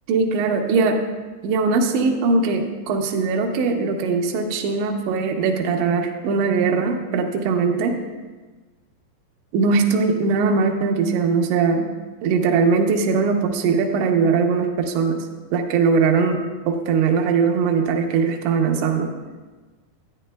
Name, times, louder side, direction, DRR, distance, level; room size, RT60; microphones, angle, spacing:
voice 1, 0.1-1.0 1.4-8.0 9.5-11.9 12.2-15.2 15.5-16.4 16.7-19.1, right 4 dB, 90° right, 4 dB, 3.1 m, -20 dB
12.0 x 9.3 x 2.2 m, 1.3 s
omnidirectional pair, 5.1 m